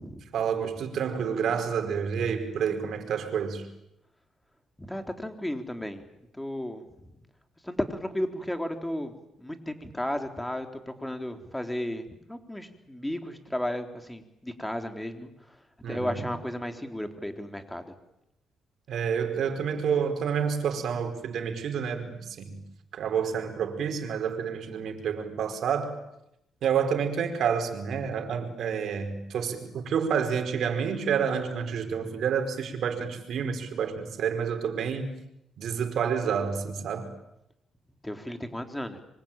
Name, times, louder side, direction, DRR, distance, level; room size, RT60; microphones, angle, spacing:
voice 1, 0.3-3.6 15.8-16.2 18.9-22.6 22.9-26.0 26.6-35.1 35.6-37.1, right 7 dB, 65° right, 5.0 m, -29 dB
voice 2, 4.8-6.0 6.4-6.8 7.6-9.1 9.4-15.3 15.9-17.8 38.0-39.0, left 1 dB, 5° left, 3.8 m, -34 dB
25.5 x 25.0 x 9.1 m
cardioid pair, 90°, 0 cm